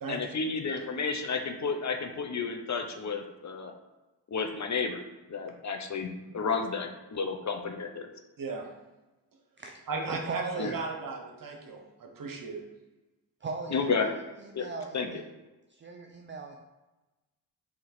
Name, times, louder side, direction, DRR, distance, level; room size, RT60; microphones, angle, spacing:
voice 1, 0.1-3.7 4.3-5.0 5.3-8.1 10.6-10.7 13.7-14.1 14.5-14.7 14.9-15.1, left 5 dB, 40° left, 5 dB, 0.7 m, -31 dB
voice 2, 8.4-8.7 9.9-10.4 10.7-12.6, right 4 dB, 50° right, 2 dB, 1.0 m, -36 dB
voice 3, 10.1-11.0 13.4-15.2 15.7-16.6, right 4 dB, 25° right, 2 dB, 0.5 m, -39 dB
3.8 x 3.0 x 4.2 m, 1.1 s
supercardioid pair, 40°, 44 cm